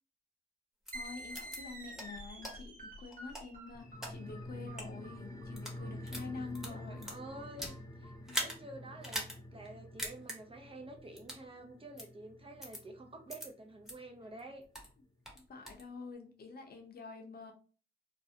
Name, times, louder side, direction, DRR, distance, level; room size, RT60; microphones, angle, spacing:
voice 1, 0.9-7.1 8.3-8.4 15.5-17.5, left 4 dB, 50° left, 3 dB, 0.7 m, -47 dB
sound 1, 0.9-1.0 1.3-1.6 2.0-2.1 2.4-2.5 3.1-4.1 4.7-4.9 5.4-5.8 6.1-7.8 8.3-8.6 9.0-9.4 9.7-9.8 10.0-10.4 11.2-11.4 12.0-12.1 12.6-12.8 13.3-13.5 13.9-14.0 14.4-14.9 15.3-15.8, equal, ahead, 1.0 m, -40 dB
sound 2, 0.9-8.2, right 1 dB, 45° right, 1.0 m, -49 dB
sound 3, 3.7-14.6 14.9-15.0, left 1 dB, 20° left, 0.4 m, -49 dB
voice 2, 5.8-6.3 6.7-9.2 9.5-14.6, right 2 dB, 30° right, 3 dB, 0.6 m, -50 dB
2.5 x 2.0 x 2.6 m, 0.39 s
cardioid pair, 65°, 20 cm